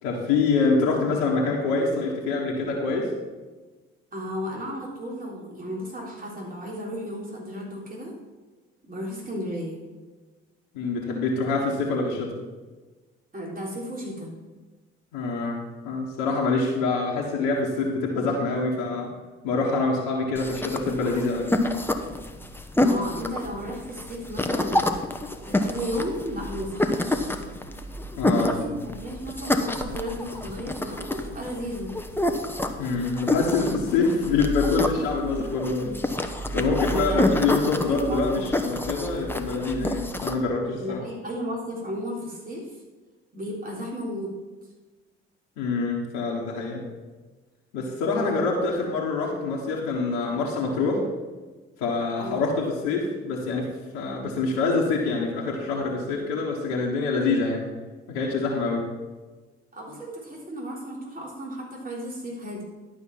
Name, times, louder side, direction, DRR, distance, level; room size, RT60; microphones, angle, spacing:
voice 1, 0.0-3.1 10.7-12.3 15.1-15.6 15.8-19.1 19.4-21.5 28.2-28.5 32.8-41.0 45.6-46.8 47.7-51.0 51.8-57.6 58.1-58.9, left 4 dB, 85° left, -3 dB, 1.4 m, -25 dB
voice 2, 4.1-8.1 8.8-9.8 13.3-14.3 22.7-27.4 28.3-32.0 36.8-38.5 40.8-42.8 43.3-44.3 48.2-48.6 52.2-52.5 59.7-62.6, equal, 30° right, -3 dB, 3.7 m, -34 dB
sound 1, 20.4-40.3, left 1 dB, 5° left, 1.1 m, -28 dB
11.5 x 5.6 x 5.9 m, 1.3 s
hypercardioid pair, 50°, 29 cm